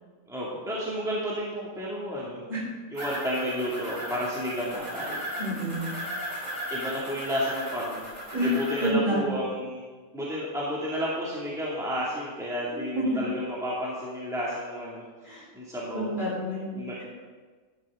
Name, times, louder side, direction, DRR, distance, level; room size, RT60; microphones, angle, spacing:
voice 1, 0.3-2.4 2.9-5.2 6.7-8.1 8.4-9.8 10.1-15.0 15.3-16.2 16.7-17.0, equal, ahead, -6 dB, 2.2 m, -31 dB
sound 1, 2.9-8.9, equal, 75° right, 4.4 m, -36 dB
voice 2, 5.4-5.9 8.3-8.5 8.8-9.4 12.9-13.2 15.2-15.4 15.9-16.7, right 1 dB, 40° right, -5 dB, 4.4 m, -28 dB
12.0 x 11.5 x 3.7 m, 1.4 s
omnidirectional pair, 1.4 m